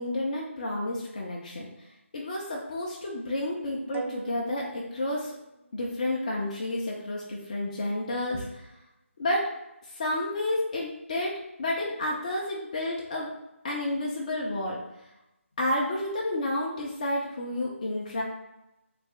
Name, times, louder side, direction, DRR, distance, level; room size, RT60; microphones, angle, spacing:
voice 1, 0.0-1.7 2.1-5.3 5.7-8.7 9.2-9.5 9.9-11.3 11.6-13.3 13.6-14.8 15.6-18.2, left 1 dB, 30° left, -3 dB, 0.7 m, -30 dB
sound 1, 3.9-5.9, right 3 dB, 65° right, 0.7 m, -41 dB
3.4 x 2.9 x 3.3 m, 0.90 s
figure-of-eight pair, 155°, 7 cm